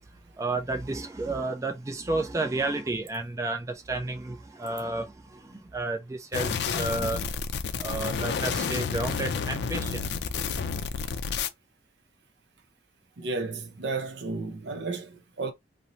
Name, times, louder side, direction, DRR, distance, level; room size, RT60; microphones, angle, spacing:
voice 1, 0.4-7.3 7.8-10.5, right 2 dB, 20° right, 0.4 m, -32 dB
sound 1, 6.3-11.5, left 6 dB, 70° left, 0.4 m, -30 dB
voice 2, 13.2-15.5, right 3 dB, 75° right, 0.5 m, -33 dB
2.6 x 2.0 x 2.9 m
head